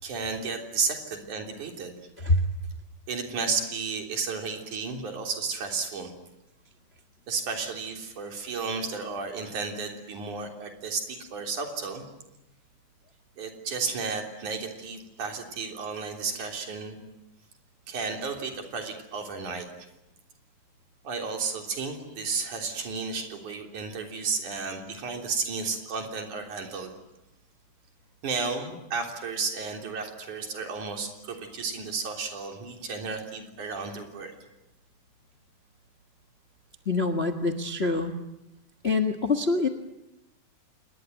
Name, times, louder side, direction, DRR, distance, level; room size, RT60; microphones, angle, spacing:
voice 1, 0.0-2.0 3.1-6.1 7.3-12.0 13.4-17.0 17.9-19.7 21.0-26.9 28.2-34.3, right 4 dB, 75° right, 3 dB, 4.9 m, -33 dB
voice 2, 36.8-38.1 38.8-39.7, left 3 dB, 35° left, 6 dB, 1.0 m, -25 dB
27.5 x 21.0 x 9.4 m, 0.90 s
omnidirectional pair, 3.5 m